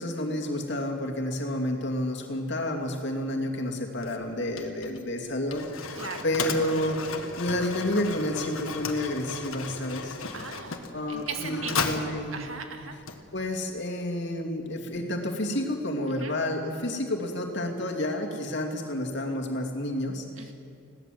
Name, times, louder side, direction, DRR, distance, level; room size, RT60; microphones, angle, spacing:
voice 1, 0.0-10.2 10.9-12.4 13.3-20.5, left 1 dB, 55° left, 1 dB, 2.6 m, -30 dB
Mechanisms, 4.0-13.7, left 5 dB, 85° left, 1.7 m, -36 dB
voice 2, 10.3-10.8 11.1-11.9 12.3-13.0 16.2-16.4 20.4-20.5, right 5 dB, 80° right, 5 dB, 2.0 m, -37 dB
21.0 x 16.5 x 7.8 m, 2.6 s
head